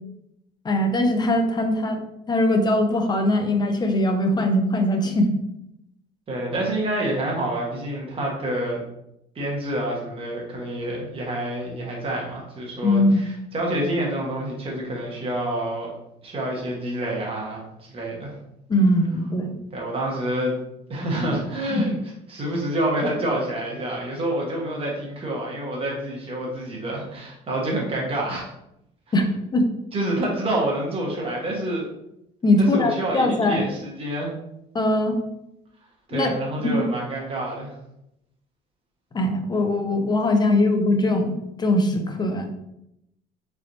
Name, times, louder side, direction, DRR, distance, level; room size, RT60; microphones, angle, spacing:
voice 1, 0.6-2.0 2.3-5.3 12.8-13.2 18.7-19.6 21.7-21.8 29.1-29.2 29.5-29.7 32.4-33.7 34.7-35.2 36.1-36.3 36.6-36.9 39.1-42.5, left 1 dB, 25° left, 5 dB, 0.6 m, -21 dB
voice 2, 6.3-8.8 9.3-15.9 16.2-17.6 17.9-18.3 19.7-20.5 20.9-21.9 22.3-28.5 29.9-31.9 32.6-34.3 36.1-37.7, right 1 dB, 35° right, -3 dB, 1.2 m, -27 dB
4.0 x 3.4 x 2.6 m, 0.82 s
cardioid pair, 110°, 17 cm